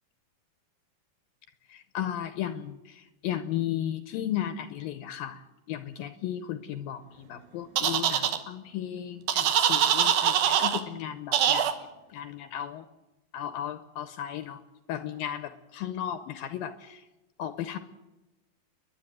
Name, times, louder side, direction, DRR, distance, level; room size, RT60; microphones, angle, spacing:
voice 1, 1.7-5.4 5.7-12.9 13.3-14.6 14.9-17.0 17.4-17.8, left 11 dB, 75° left, 10 dB, 2.4 m, -35 dB
sound 1, 7.8-8.4 9.3-10.8 11.3-11.7, right 9 dB, 70° right, 2.8 m, -23 dB
29.5 x 11.0 x 9.2 m, 1.0 s
omnidirectional pair, 4.5 m